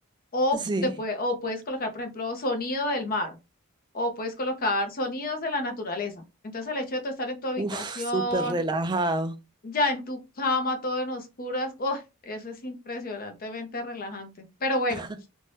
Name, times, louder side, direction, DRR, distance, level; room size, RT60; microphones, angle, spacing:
voice 1, 0.3-3.4 3.9-6.2 6.5-8.6 9.6-14.3 14.6-15.1, left 1 dB, 40° left, 0.6 m, -29 dB
voice 2, 7.6-9.4 14.9-15.3, right 2 dB, 20° right, 0.4 m, -28 dB
2.6 x 2.2 x 3.2 m
head